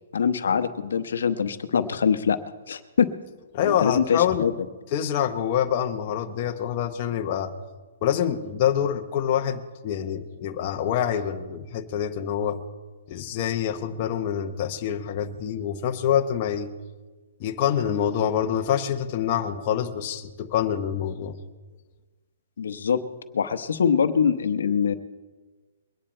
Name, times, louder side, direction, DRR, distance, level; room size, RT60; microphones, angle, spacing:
voice 1, 0.1-2.4 2.7-3.1 3.6-4.5 22.6-23.0 23.3-24.9, left 7 dB, 75° left, 9 dB, 0.9 m, -23 dB
voice 2, 3.5-4.5 4.9-7.5 8.0-12.6 13.1-16.7 17.4-21.3, left 9 dB, 30° left, 4 dB, 0.8 m, -26 dB
22.5 x 9.8 x 4.4 m, 1.3 s
hypercardioid pair, 170°, 0 cm